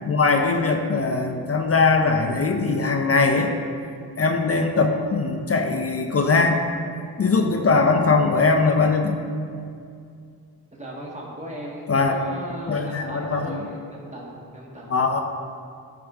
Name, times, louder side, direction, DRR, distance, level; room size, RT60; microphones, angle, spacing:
voice 1, 0.0-3.5 4.2-6.6 7.2-9.2 11.9-12.1 12.7-13.6 14.9-15.2, left 4 dB, 40° left, 4 dB, 0.7 m, -21 dB
voice 2, 10.7-14.9, right 1 dB, 20° right, -4 dB, 1.6 m, -37 dB
10.5 x 4.7 x 3.6 m, 2.3 s
cardioid pair, 90°, 37 cm